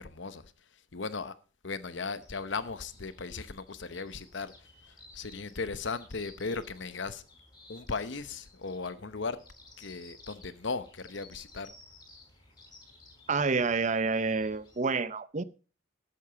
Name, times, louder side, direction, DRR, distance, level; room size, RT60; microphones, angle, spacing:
voice 1, 0.0-1.3 1.6-7.2 7.7-9.4 9.8-11.7, left 4 dB, 60° left, 0.9 m, -37 dB
sound 1, 2.1-14.8, left 2 dB, 20° left, 3.9 m, -56 dB
voice 2, 13.3-15.4, right 4 dB, 35° right, 0.6 m, -28 dB
12.5 x 8.3 x 5.0 m
head